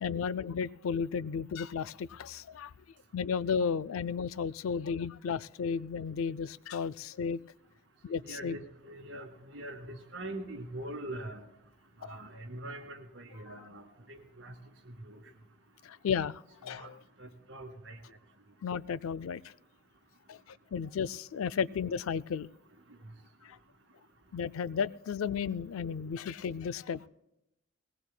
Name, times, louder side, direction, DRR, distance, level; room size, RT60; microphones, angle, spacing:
voice 1, 0.0-2.7 3.1-7.4 8.0-8.6 12.0-12.2 15.8-17.0 18.6-19.5 20.3-22.5 23.4-23.6 24.3-27.1, left 6 dB, 90° left, 16 dB, 0.4 m, -34 dB
voice 2, 8.1-11.4 12.0-14.6 14.9-15.2 16.7-16.9 17.2-18.0, right 1 dB, 70° right, 3 dB, 1.9 m, -43 dB
20.0 x 18.5 x 2.2 m, 0.85 s
head